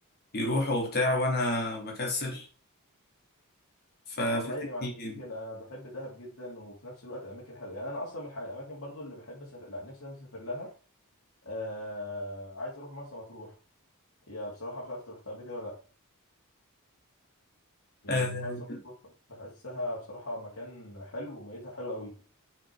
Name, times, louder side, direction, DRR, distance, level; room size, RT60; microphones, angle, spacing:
voice 1, 0.3-2.5 4.1-4.5 4.8-5.2 18.1-18.8, left 1 dB, 45° left, 3.0 m, -29 dB
voice 2, 4.3-4.8 5.2-10.7 11.4-13.6 14.3-15.8 18.0-18.5 18.8-18.9 19.3-22.2, left 1 dB, 65° left, 3.2 m, -39 dB
6.3 x 6.1 x 5.0 m
head